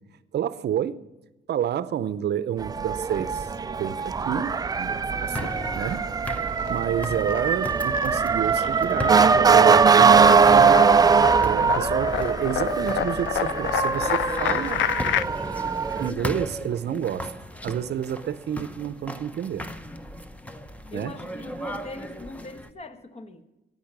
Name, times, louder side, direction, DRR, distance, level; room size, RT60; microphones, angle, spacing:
voice 1, 0.3-1.0 1.5-3.5 3.8-6.1 6.7-10.8 11.4-14.8 16.0-17.3 17.6-19.7 20.9-21.1, right 10 dB, 55° right, 0.7 m, -29 dB
Motor vehicle (road) / Siren, 2.6-16.1, right 5 dB, 20° right, 0.3 m, -21 dB
sound 1, 5.3-6.1 6.4-15.2, left 12 dB, 75° left, 0.4 m, -30 dB
voice 2, 5.3-5.8 20.9-23.4, left 2 dB, 30° left, 1.2 m, -41 dB
sound 2, 5.3-22.7, equal, 5° left, 0.8 m, -37 dB
15.5 x 5.5 x 9.4 m
cardioid pair, 90°, 20 cm